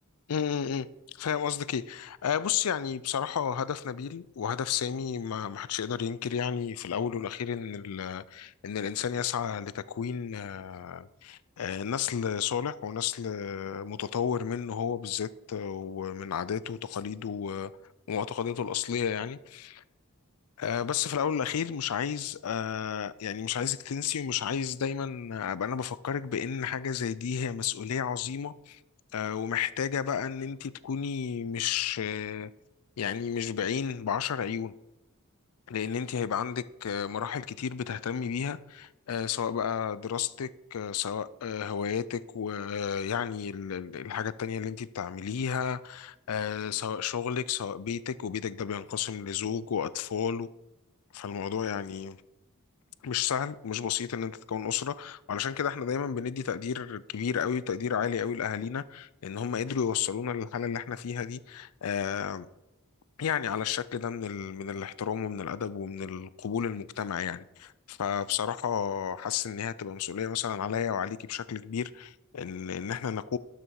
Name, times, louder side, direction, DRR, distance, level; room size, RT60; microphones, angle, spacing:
voice 1, 0.3-0.9 1.2-17.7 18.1-19.8 20.6-28.8 29.1-32.5 33.0-34.7 35.7-50.5 51.1-52.2 53.0-62.5 63.2-73.4, left 7 dB, 85° left, 0.4 m, -32 dB
12.0 x 6.6 x 4.6 m
head